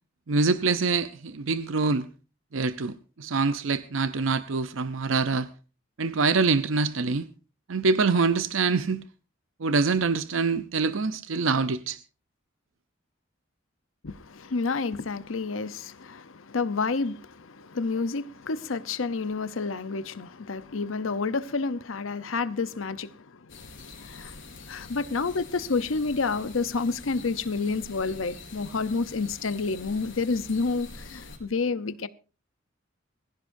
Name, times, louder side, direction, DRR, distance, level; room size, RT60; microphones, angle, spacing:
voice 1, 0.3-2.1 2.5-5.5 6.0-7.3 7.7-9.0 9.6-12.0, right 4 dB, 75° right, 0.7 m, -25 dB
voice 2, 14.0-23.6 23.9-24.4 24.7-32.1, left 4 dB, 90° left, 0.8 m, -29 dB
sound 1, 23.5-31.4, left 3 dB, 70° left, 4.8 m, -45 dB
22.5 x 15.5 x 2.7 m
head